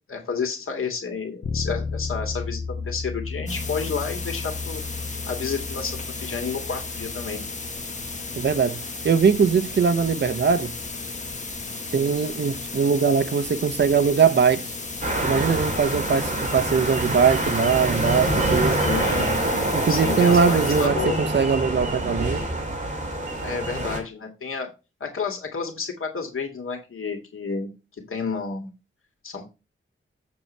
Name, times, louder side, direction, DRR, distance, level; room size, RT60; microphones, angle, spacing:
voice 1, 0.1-4.8 5.3-7.4 18.8-19.4 19.9-21.2 23.4-24.7 25.0-27.7 28.1-28.7 29.2-29.4, left 5 dB, 80° left, 2.3 m, -30 dB
Bass guitar, 1.4-11.2, left 4 dB, 65° left, 1.2 m, -35 dB
sound 1, 3.5-20.9, left 3 dB, 35° left, 1.4 m, -34 dB
voice 2, 8.4-10.7 11.9-14.7 15.2-18.8 19.7-22.4, right 6 dB, 55° right, 0.7 m, -21 dB
sound 2, 15.0-24.0, right 1 dB, 35° right, 2.8 m, -25 dB
8.0 x 6.8 x 3.3 m
wide cardioid pair, 150°, 21 cm